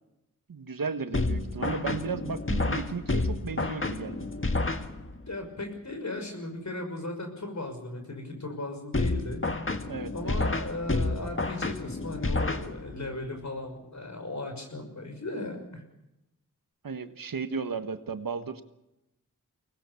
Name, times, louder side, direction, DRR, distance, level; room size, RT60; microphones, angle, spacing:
voice 1, 0.5-4.3 9.8-10.4 16.8-18.6, right 5 dB, 80° right, 9 dB, 1.4 m, -35 dB
sound 1, 1.1-5.3 8.9-13.1, left 2 dB, 40° left, 1.8 m, -30 dB
voice 2, 5.3-9.4 10.1-15.8, left 2 dB, 55° left, 4 dB, 6.0 m, -37 dB
24.0 x 19.5 x 7.1 m, 0.90 s
wide cardioid pair, 55°, 34 cm